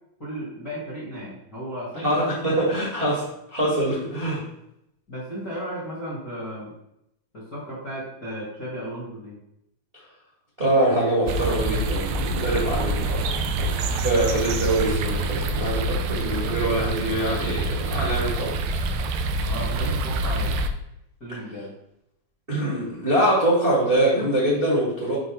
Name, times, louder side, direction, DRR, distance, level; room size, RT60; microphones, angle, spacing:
voice 1, 0.2-2.2 5.1-6.7 7.3-9.4 19.4-20.5 21.2-21.7, equal, 40° left, -5 dB, 1.5 m, -34 dB
voice 2, 2.0-4.4 10.6-18.5 22.5-25.2, right 1 dB, 25° right, -5 dB, 1.2 m, -24 dB
sound 1, 11.3-20.7, right 2 dB, 85° right, 2.3 m, -26 dB
7.7 x 5.3 x 3.3 m, 0.81 s
omnidirectional pair, 4.0 m